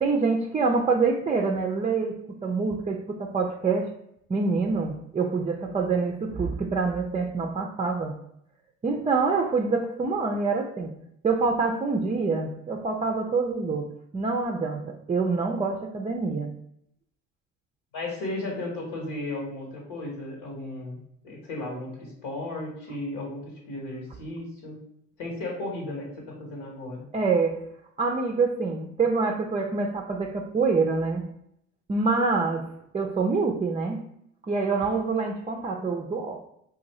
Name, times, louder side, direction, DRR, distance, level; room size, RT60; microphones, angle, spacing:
voice 1, 0.0-3.9 4.3-8.2 8.8-10.9 11.2-16.5 27.1-27.6 28.0-31.2 31.9-32.7 32.9-34.0 34.5-36.4, right 4 dB, 20° right, 1 dB, 0.4 m, -26 dB
voice 2, 17.9-21.0 21.2-24.8 25.2-27.0, left 2 dB, 80° left, -2 dB, 1.2 m, -35 dB
2.5 x 2.4 x 4.1 m, 0.73 s
supercardioid pair, 65°, 36 cm